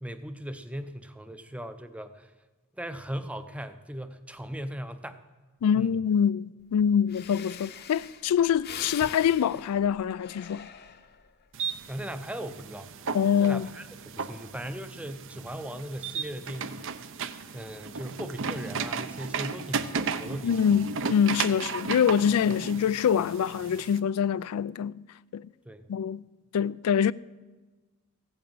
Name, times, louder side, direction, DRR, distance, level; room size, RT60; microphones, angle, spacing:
voice 1, 0.0-2.3 2.7-5.2 5.7-5.9 11.9-12.9 13.4-16.8 17.5-20.7 25.7-25.9, right 1 dB, 5° right, 0.6 m, -38 dB
voice 2, 5.6-10.7 13.1-13.7 20.4-25.0 25.3-25.5 25.9-26.2 26.5-27.1, left 8 dB, 90° left, 0.3 m, -25 dB
Breathing, 6.8-6.9 7.1-11.3 11.8-12.2, left 7 dB, 45° left, 0.8 m, -43 dB
sound 1, 11.5-24.0, right 5 dB, 60° right, 0.7 m, -35 dB
15.5 x 8.8 x 7.7 m
head